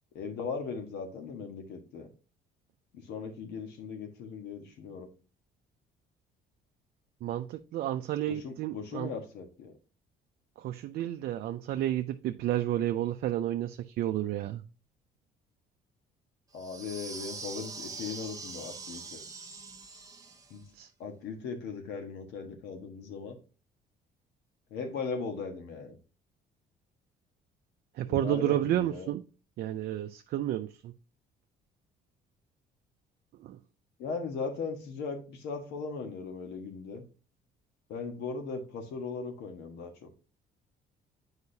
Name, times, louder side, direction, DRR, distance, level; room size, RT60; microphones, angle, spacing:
voice 1, 0.1-2.1 2.9-5.1 8.3-9.7 16.5-19.2 20.5-20.6 21.0-23.4 24.7-26.0 28.1-29.1 34.0-37.0 37.9-40.1, left 5 dB, 80° left, 1.4 m, -38 dB
voice 2, 7.2-9.1 10.6-14.6 20.8-20.9 28.0-29.2 29.6-30.9 33.4-33.6, right 12 dB, 65° right, 0.5 m, -31 dB
sound 1, 16.6-20.6, right 4 dB, 20° right, 0.9 m, -43 dB
8.0 x 4.8 x 2.7 m
cardioid pair, 110°, 17 cm